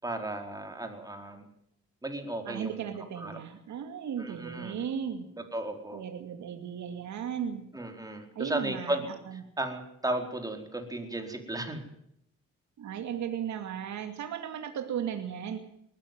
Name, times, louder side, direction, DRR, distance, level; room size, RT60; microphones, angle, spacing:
voice 1, 0.0-1.5 2.0-3.4 4.2-4.8 5.4-6.0 7.7-9.0 9.6-11.8, right 1 dB, 10° right, 4 dB, 4.5 m, -35 dB
voice 2, 2.4-5.3 5.9-7.7 8.0-9.4 12.8-15.6, right 8 dB, 70° right, 6 dB, 2.4 m, -36 dB
20.5 x 13.5 x 9.3 m, 0.74 s
cardioid pair, 90°, 30 cm